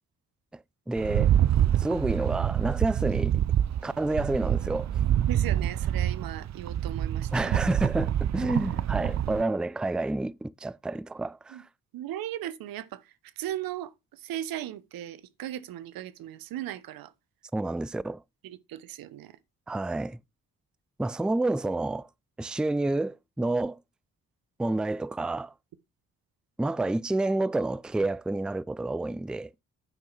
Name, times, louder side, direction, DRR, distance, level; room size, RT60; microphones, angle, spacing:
voice 1, 0.9-1.3 1.7-3.4 3.8-4.9 7.3-11.6 17.5-18.2 19.7-20.2 21.0-22.1 22.4-23.8 24.6-25.5 26.6-29.5, right 2 dB, ahead, 0.4 m, -29 dB
Rattle, 1.0-9.4, right 10 dB, 50° right, 0.6 m, -26 dB
voice 2, 5.3-7.5 11.5-11.6 11.9-17.1 18.4-19.3, right 12 dB, 80° right, 0.8 m, -37 dB
9.3 x 5.5 x 4.4 m
supercardioid pair, 45°, 35 cm